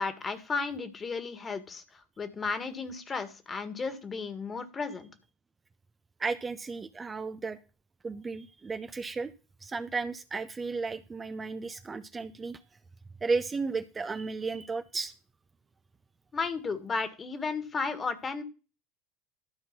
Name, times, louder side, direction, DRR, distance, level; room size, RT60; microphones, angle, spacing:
voice 1, 0.0-5.1 16.3-18.4, left 4 dB, 25° left, 11 dB, 1.8 m, -34 dB
voice 2, 6.2-7.6 8.0-9.3 9.6-12.6 13.2-15.1, right 4 dB, 20° right, 10 dB, 0.6 m, -34 dB
13.0 x 4.5 x 6.0 m, 0.33 s
figure-of-eight pair, 70°, 0 cm